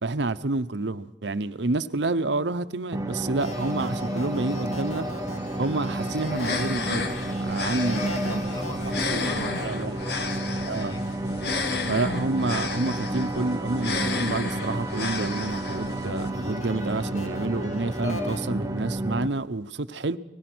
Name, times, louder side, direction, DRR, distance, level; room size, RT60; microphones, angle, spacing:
voice 1, 0.0-5.1 5.6-7.1 7.4-8.4 9.1-10.0 10.7-10.9 11.9-20.2, right 2 dB, 80° right, 0.9 m, -29 dB
sound 1, 2.9-19.3, right 1 dB, 15° right, 0.8 m, -31 dB
sound 2, 3.4-13.0 13.7-18.4, left 2 dB, 40° left, 2.9 m, -39 dB
sound 3, 6.3-16.3, left 3 dB, 65° left, 1.6 m, -33 dB
voice 2, 7.7-11.1, left 1 dB, 20° left, 1.7 m, -42 dB
26.0 x 18.5 x 6.2 m
head